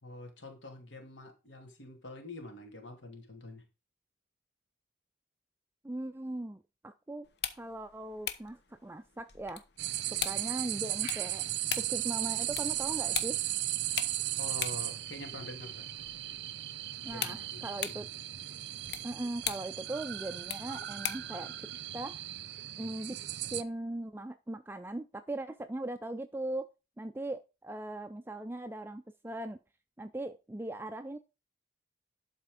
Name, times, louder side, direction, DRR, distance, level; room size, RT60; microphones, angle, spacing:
voice 1, 0.0-3.6 14.3-15.9 17.0-18.1, left 2 dB, 75° left, 3 dB, 2.7 m, -46 dB
voice 2, 5.8-7.3 7.6-9.6 10.2-11.4 11.8-13.4 17.0-18.1 19.0-21.5 21.9-22.2 22.8-23.2 23.5-26.7 27.0-29.6 30.0-31.2, right 1 dB, 10° right, 10 dB, 0.3 m, -39 dB
swihtches de luz electricas on off, 7.2-21.4, left 9 dB, 60° left, 0.9 m, -42 dB
sound 1, 9.8-23.6, right 14 dB, 65° right, 0.6 m, -36 dB
11.5 x 4.3 x 5.1 m, 0.29 s
head